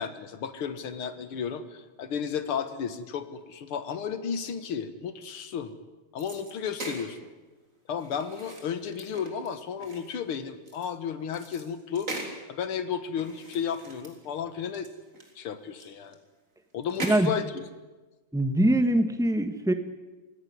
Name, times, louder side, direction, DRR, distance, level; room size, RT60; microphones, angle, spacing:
voice 1, 0.0-5.7 6.1-7.3 7.9-12.1 12.5-14.9 15.4-16.2 16.7-17.7, left 7 dB, 80° left, 11 dB, 2.3 m, -33 dB
sound 1, 6.2-7.1 8.0-10.9 11.3-12.4 13.2-14.4 14.7-14.9 15.1-16.1 16.8-17.4, right 2 dB, 35° right, 3.9 m, -40 dB
voice 2, 18.3-19.7, right 1 dB, ahead, 8 dB, 1.0 m, -23 dB
27.0 x 16.0 x 9.7 m, 1.2 s
omnidirectional pair, 2.4 m